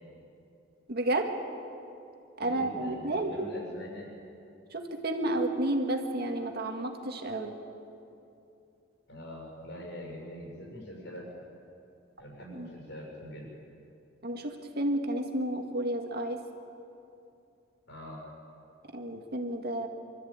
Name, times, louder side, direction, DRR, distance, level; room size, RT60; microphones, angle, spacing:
voice 1, 0.9-1.3 2.4-3.5 4.7-7.5 12.5-12.7 14.2-16.4 18.9-19.9, right 1 dB, 55° right, 4 dB, 1.9 m, -31 dB
voice 2, 2.4-4.1 9.1-11.2 12.2-13.5 17.8-18.2, equal, 65° left, -1 dB, 6.6 m, -43 dB
25.5 x 13.5 x 8.8 m, 2.7 s
head